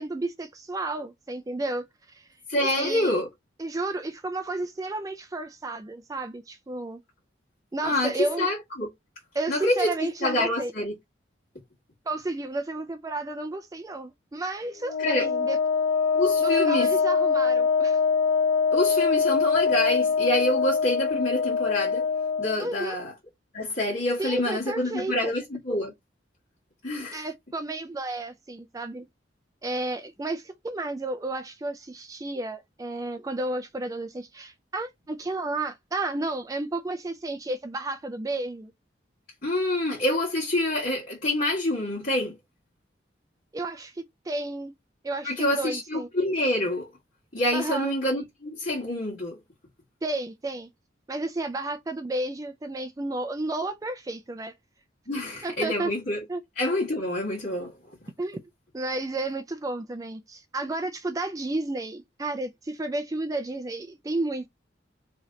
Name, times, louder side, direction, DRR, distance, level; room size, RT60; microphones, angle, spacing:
voice 1, 0.0-2.3 2.6-3.2 3.6-7.0 7.7-8.5 9.3-10.7 12.1-15.6 16.4-18.0 22.6-23.0 24.2-25.3 27.1-29.1 29.6-38.7 43.5-44.7 45.0-46.1 47.5-47.9 50.0-50.7 51.1-54.5 55.4-55.9 56.3-56.4 58.2-58.4 58.7-64.5, right 2 dB, 20° right, 0.3 m, -32 dB
voice 2, 2.5-3.3 7.8-8.9 9.5-9.9 10.2-10.9 15.0-15.3 16.1-16.9 18.7-22.0 22.4-23.1 23.5-25.9 26.8-27.3 39.4-42.3 45.2-46.9 47.3-49.4 55.1-56.2 56.5-57.7, left 1 dB, 50° left, 1.6 m, -27 dB
Wind instrument woodwind instrument, 14.8-22.7, left 5 dB, 85° left, 0.6 m, -23 dB
3.1 x 2.8 x 3.7 m
head